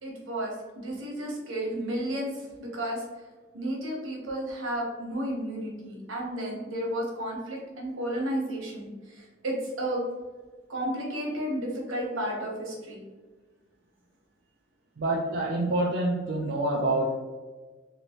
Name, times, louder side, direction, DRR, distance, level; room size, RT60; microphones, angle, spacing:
voice 1, 0.0-3.0 3.5-10.0 10.7-13.0, right 1 dB, 90° right, -2 dB, 1.0 m, -32 dB
voice 2, 15.0-17.2, right 1 dB, 60° right, -2 dB, 0.4 m, -27 dB
3.0 x 3.0 x 2.8 m, 1.3 s
head